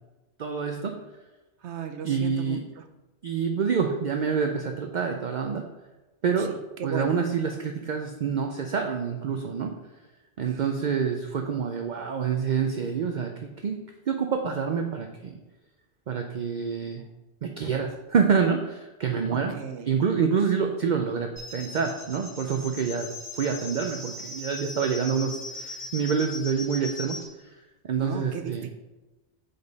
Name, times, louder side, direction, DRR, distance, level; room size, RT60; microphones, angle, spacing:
voice 1, 0.4-1.0 2.0-2.6 3.2-5.6 6.2-6.5 6.8-9.7 10.4-13.8 14.1-15.4 16.1-17.0 17.4-19.5 19.8-23.1 23.3-27.5 27.8-28.7, right 6 dB, 55° right, 4 dB, 0.6 m, -27 dB
voice 2, 1.6-2.6 6.8-7.2 19.6-19.9 28.0-28.7, right 7 dB, 90° right, 8 dB, 1.0 m, -35 dB
sound 1, 21.4-27.3, left 2 dB, 50° left, 2.6 m, -39 dB
7.0 x 5.2 x 4.0 m, 1.1 s
omnidirectional pair, 1.1 m